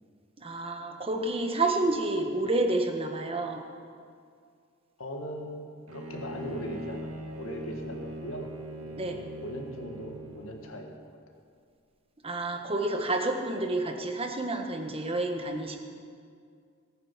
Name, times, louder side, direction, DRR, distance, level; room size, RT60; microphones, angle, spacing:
voice 1, 0.4-3.6 9.0-9.2 12.2-15.8, right 2 dB, 25° right, 4 dB, 1.2 m, -29 dB
voice 2, 5.0-8.5 8.8-10.9, equal, 75° left, 2 dB, 1.8 m, -40 dB
Bowed string instrument, 5.9-10.6, right 1 dB, 90° right, 1.8 m, -40 dB
18.5 x 9.2 x 5.8 m, 2.2 s
head